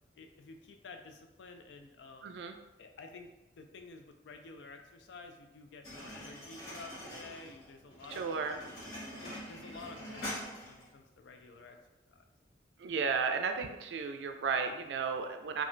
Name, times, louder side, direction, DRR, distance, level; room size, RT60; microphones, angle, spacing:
voice 1, 0.2-2.4 2.8-8.6 9.2-11.8 12.1-12.2, left 3 dB, 80° left, 5 dB, 0.4 m, -51 dB
voice 2, 2.2-2.5 8.1-8.6 12.8-15.6, right 5 dB, 85° right, 6 dB, 0.3 m, -34 dB
sound 1, 5.8-10.9, equal, 55° left, 1.0 m, -44 dB
2.3 x 2.1 x 3.7 m, 0.97 s
head